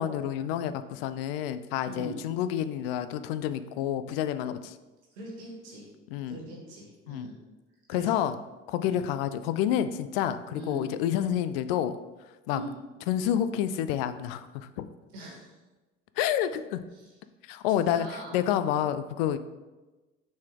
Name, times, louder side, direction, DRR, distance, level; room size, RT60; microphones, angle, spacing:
voice 1, 0.0-4.8 6.1-6.4 7.1-7.3 7.9-8.3 8.7-12.0 12.5-12.6 13.1-14.9 16.2-16.8 17.5-18.1 18.3-19.4, left 10 dB, 55° left, 12 dB, 0.4 m, -29 dB
voice 2, 1.8-2.2 5.1-5.9 6.3-7.4 7.9-8.2 8.8-9.1 10.5-10.8 12.5-12.7 15.1-15.6 16.9-17.2 17.7-18.4, right 1 dB, 65° right, -3 dB, 1.8 m, -42 dB
6.0 x 4.2 x 3.7 m, 1.2 s
figure-of-eight pair, 55°, 35 cm